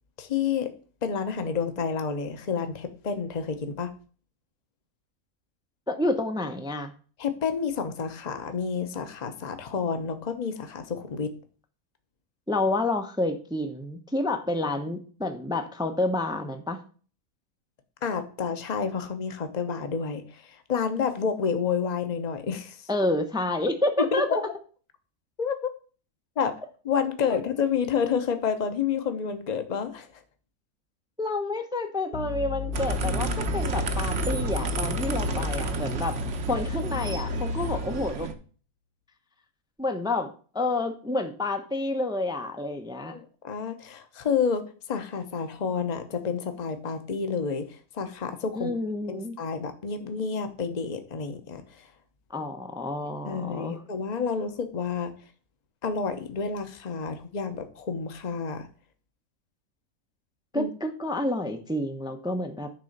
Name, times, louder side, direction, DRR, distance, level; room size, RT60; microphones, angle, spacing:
voice 1, 0.2-0.7 1.0-3.9 7.2-11.3 18.0-22.9 24.1-24.4 25.4-25.5 26.4-26.5 26.8-30.1 33.0-33.2 43.1-44.6 44.9-48.7 49.1-51.9 53.2-55.1 55.8-58.7 60.5-60.7, left 6 dB, 35° left, 8 dB, 0.9 m, -29 dB
voice 2, 5.9-6.9 12.5-16.8 22.9-24.3 27.3-27.4 31.2-36.2 36.5-38.3 39.8-43.2 48.5-49.3 52.3-53.8 60.5-62.7, left 2 dB, 5° right, 6 dB, 0.5 m, -29 dB
sound 1, 32.1-38.1, left 6 dB, 80° left, 1.2 m, -33 dB
sound 2, 32.7-38.3, right 4 dB, 55° right, 1.2 m, -31 dB
10.0 x 3.8 x 6.6 m, 0.40 s
omnidirectional pair, 1.6 m